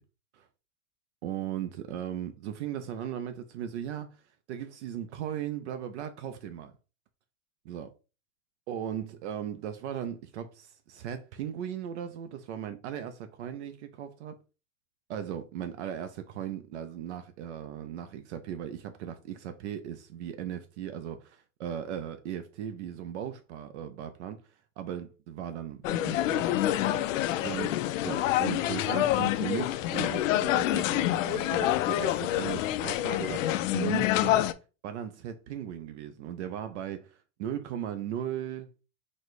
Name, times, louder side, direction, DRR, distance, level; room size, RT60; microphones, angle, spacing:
voice 1, 1.2-4.2 4.5-6.7 7.6-7.9 8.7-14.4 15.1-24.4 24.8-27.0 27.4-27.8 28.0-34.5 34.8-38.7, right 10 dB, 55° right, 0.5 m, -37 dB
sound 1, 25.8-34.5, left 14 dB, 65° left, 0.5 m, -27 dB
4.2 x 2.2 x 4.6 m
supercardioid pair, 160°, 41 cm